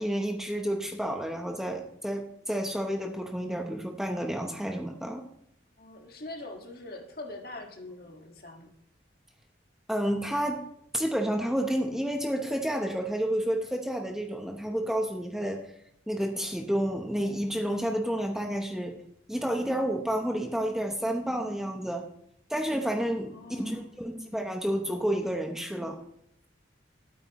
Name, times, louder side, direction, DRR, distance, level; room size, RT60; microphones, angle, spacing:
voice 1, 0.0-5.2 9.9-10.6 10.9-15.6 16.1-19.0 19.3-22.0 22.5-26.0, equal, ahead, 2 dB, 0.8 m, -30 dB
voice 2, 5.8-8.7 23.3-24.0, left 2 dB, 50° left, 2 dB, 1.7 m, -43 dB
13.0 x 8.5 x 3.0 m, 0.73 s
head